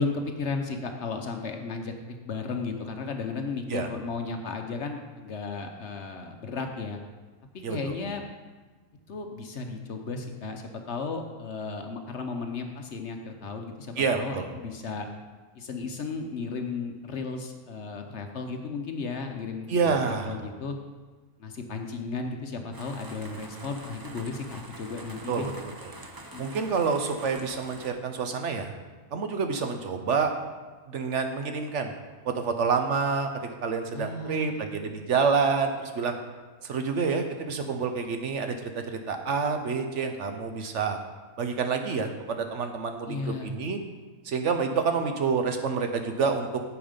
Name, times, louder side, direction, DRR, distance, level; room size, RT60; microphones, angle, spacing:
voice 1, 0.0-7.0 7.5-8.2 9.1-15.1 15.6-20.8 21.4-25.5 26.3-26.4 33.9-34.7 43.1-43.5, left 4 dB, 55° left, 4 dB, 1.0 m, -34 dB
voice 2, 7.6-8.0 14.0-14.5 19.7-20.4 25.3-25.5 25.8-25.9 26.4-28.7 29.1-30.3 30.9-31.9 32.2-36.2 36.6-41.0 41.4-43.8 44.2-46.6, right 5 dB, 60° right, 6 dB, 1.0 m, -28 dB
sound 1, 22.7-27.9, right 2 dB, 30° right, 0.4 m, -45 dB
9.0 x 7.1 x 5.1 m, 1.3 s
omnidirectional pair, 1.5 m